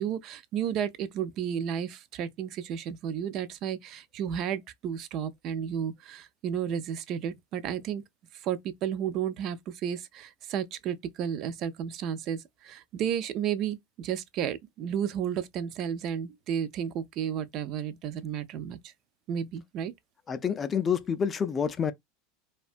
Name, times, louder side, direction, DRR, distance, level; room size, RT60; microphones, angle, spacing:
voice 1, 0.0-8.0 8.4-18.9 19.3-19.9, right 9 dB, 50° right, 0.3 m, -32 dB
voice 2, 20.3-21.9, left 7 dB, 25° left, 0.3 m, -28 dB
2.6 x 2.2 x 2.4 m
hypercardioid pair, 110°, 0 cm